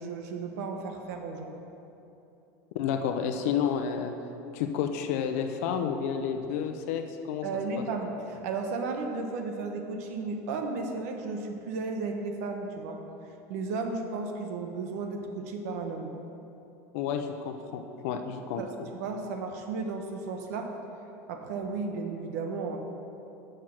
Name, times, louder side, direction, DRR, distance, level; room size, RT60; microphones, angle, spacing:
voice 1, 0.0-1.5 7.4-13.0 13.5-16.1 18.6-18.7 19.0-20.7 21.3-22.8, right 4 dB, 80° right, 4 dB, 1.1 m, -34 dB
voice 2, 2.7-4.1 4.5-7.5 7.8-7.9 16.9-18.6, left 7 dB, 70° left, 6 dB, 0.7 m, -30 dB
9.8 x 6.3 x 6.0 m, 2.9 s
supercardioid pair, 160°, 8 cm